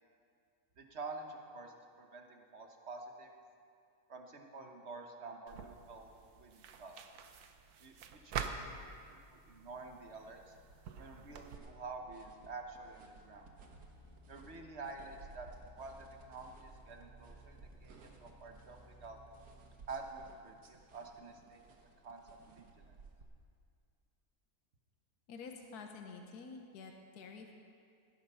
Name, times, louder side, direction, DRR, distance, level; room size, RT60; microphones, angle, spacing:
voice 1, 0.8-3.3 4.1-7.0 7.8-10.5 11.0-13.5 14.3-15.5 15.7-19.2 19.9-21.6 22.0-23.0, right 3 dB, 45° right, 3 dB, 1.4 m, -49 dB
sound 1, 5.5-11.6, right 6 dB, 75° right, 1.4 m, -46 dB
sound 2, 7.9-19.8, equal, 25° left, 1.1 m, -62 dB
sound 3, 11.2-23.2, right 4 dB, 90° right, 1.9 m, -59 dB
voice 2, 25.3-27.5, left 4 dB, 75° left, 3 dB, 1.5 m, -49 dB
18.0 x 10.5 x 5.6 m, 2.3 s
omnidirectional pair, 1.7 m